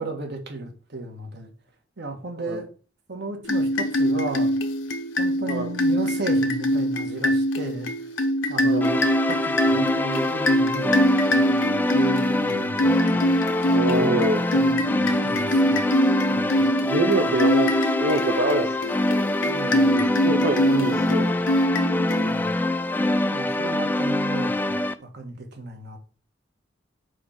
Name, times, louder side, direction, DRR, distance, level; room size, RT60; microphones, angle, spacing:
voice 1, 0.0-1.5 2.0-2.7 3.1-4.5 5.2-7.9 8.5-13.2 13.9-16.7 17.2-17.3 19.4-20.1 20.6-21.3 22.2-22.5 23.3-26.0, right 2 dB, 60° right, 1.5 m, -35 dB
sound 1, 3.4-22.7, equal, 80° left, 0.9 m, -24 dB
sound 2, 8.8-24.9, left 1 dB, 10° left, 0.3 m, -24 dB
voice 2, 13.7-14.4 16.8-18.9 19.8-21.3, right 2 dB, 80° right, 1.0 m, -26 dB
5.0 x 5.0 x 5.9 m
head